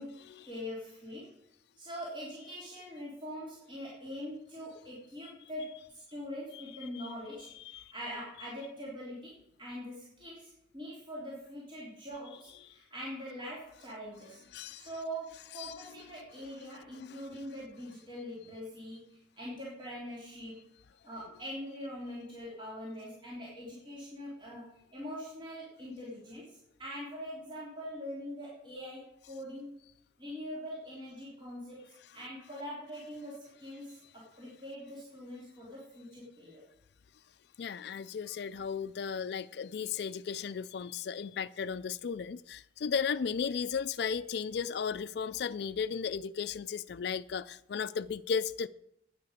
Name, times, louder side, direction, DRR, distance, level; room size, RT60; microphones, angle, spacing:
voice 1, 0.0-1.3 1.8-14.4 14.7-20.6 21.0-29.7 30.2-31.8 32.1-36.6, equal, 25° right, 3.3 m, -43 dB
voice 2, 14.5-14.9 15.6-15.7 37.6-48.7, left 6 dB, 60° left, 0.4 m, -35 dB
9.6 x 9.3 x 6.5 m
head